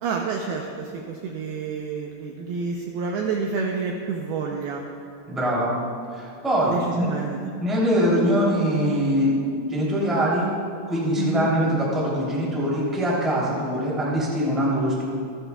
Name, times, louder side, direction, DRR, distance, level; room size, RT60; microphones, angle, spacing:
voice 1, 0.0-4.8 6.7-7.4 11.2-11.5, right 5 dB, 80° right, 1 dB, 2.3 m, -29 dB
voice 2, 5.3-5.7 6.1-7.1 7.6-9.4 9.7-10.5 10.9-15.0, equal, ahead, -6 dB, 1.8 m, -23 dB
27.0 x 10.0 x 2.3 m, 2.3 s
omnidirectional pair, 5.3 m